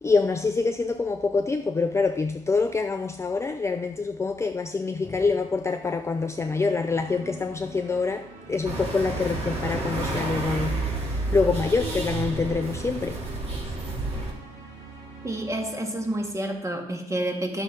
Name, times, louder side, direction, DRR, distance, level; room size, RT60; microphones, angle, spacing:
voice 1, 0.0-13.2, left 4 dB, 15° left, 0.4 m, -26 dB
sound 1, 5.2-16.3, right 4 dB, 50° right, 2.8 m, -46 dB
sound 2, 8.6-14.3, right 2 dB, 35° right, 2.9 m, -30 dB
voice 2, 15.2-17.6, right 1 dB, 15° right, 1.9 m, -29 dB
10.0 x 6.5 x 3.9 m
supercardioid pair, 75°, 18 cm